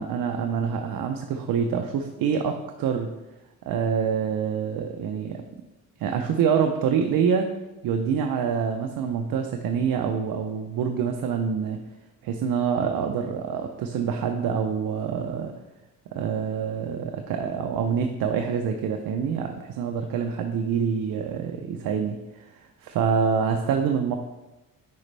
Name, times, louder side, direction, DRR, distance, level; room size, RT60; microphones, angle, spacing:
voice 1, 0.0-3.1 3.7-5.4 6.0-7.5 7.8-11.8 12.2-15.5 16.1-24.2, right 7 dB, 80° right, 5 dB, 0.7 m, -26 dB
9.3 x 5.1 x 3.3 m, 1.0 s
cardioid pair, 115°, 34 cm